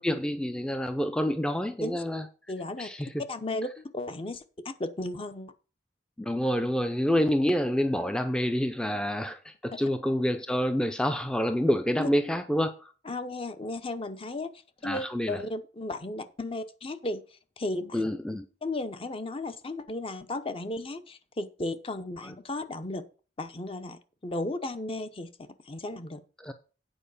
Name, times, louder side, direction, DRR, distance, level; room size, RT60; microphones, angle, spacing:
voice 1, 0.0-2.3 2.8-3.1 6.2-12.9 14.8-15.4 17.9-18.4 26.4-26.5, equal, 5° left, 0.5 m, -27 dB
voice 2, 2.5-2.9 3.3-5.5 12.0-12.1 13.0-14.5 14.8-17.2 17.6-18.1 18.6-23.0 23.4-26.2, left 2 dB, 30° left, 0.8 m, -35 dB
9.0 x 4.8 x 6.8 m
head